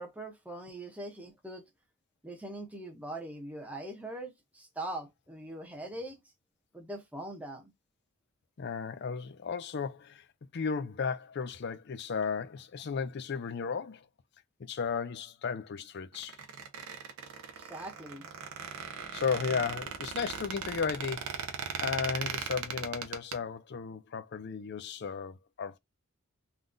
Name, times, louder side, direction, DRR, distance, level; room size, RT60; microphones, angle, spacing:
voice 1, 0.0-1.6 2.2-6.2 6.7-7.7 17.5-18.3, right 1 dB, 5° right, 0.7 m, -42 dB
voice 2, 8.6-14.1 14.6-16.4 19.1-25.8, left 5 dB, 50° left, 0.4 m, -35 dB
Squeak, 16.1-23.4, right 6 dB, 85° right, 0.6 m, -38 dB
3.6 x 2.3 x 2.5 m
head